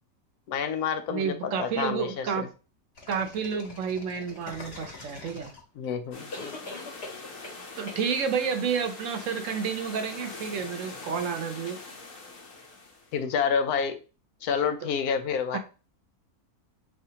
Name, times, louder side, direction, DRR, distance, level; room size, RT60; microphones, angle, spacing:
voice 1, 0.5-2.5 5.8-6.3 13.1-14.0 14.4-15.6, left 6 dB, 85° left, 9 dB, 1.1 m, -28 dB
voice 2, 1.1-2.5 3.1-5.5 7.8-11.8 15.5-15.6, right 6 dB, 65° right, 7 dB, 0.9 m, -30 dB
sound 1, 3.0-5.8 6.3-7.6 7.9-8.0, left 3 dB, 45° left, 1.3 m, -42 dB
sound 2, 6.1-13.1, left 3 dB, 65° left, 1.2 m, -43 dB
4.3 x 3.3 x 2.8 m, 0.33 s
omnidirectional pair, 1.6 m